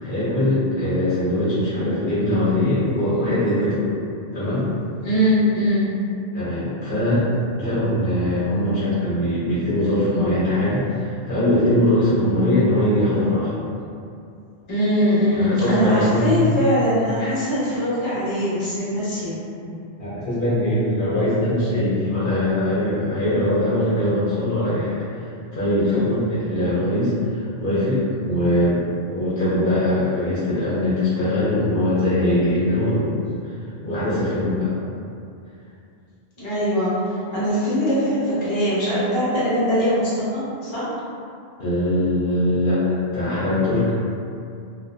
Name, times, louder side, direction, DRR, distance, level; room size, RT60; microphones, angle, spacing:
voice 1, 0.0-3.9 4.3-4.7 6.3-7.3 7.5-13.6 15.4-16.6 19.6-19.7 20.0-24.9 25.5-33.2 33.8-34.7 41.6-42.8 43.1-43.9, left 1 dB, 60° left, -12 dB, 0.8 m, -21 dB
voice 2, 5.0-5.9 14.7-19.4 25.8-26.1 36.4-36.9 37.3-40.9, equal, 30° left, -10 dB, 0.8 m, -21 dB
2.5 x 2.2 x 2.5 m, 2.5 s
omnidirectional pair, 1.0 m